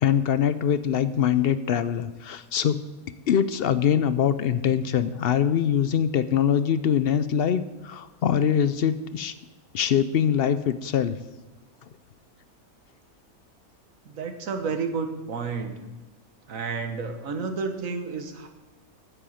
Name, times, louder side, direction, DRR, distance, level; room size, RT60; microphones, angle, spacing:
voice 1, 0.0-2.8 3.3-9.3 9.7-11.2, left 8 dB, 65° left, 14 dB, 0.6 m, -23 dB
voice 2, 14.0-15.8 16.5-18.5, right 5 dB, 65° right, 6 dB, 1.6 m, -31 dB
9.7 x 7.7 x 8.5 m, 1.1 s
omnidirectional pair, 1.5 m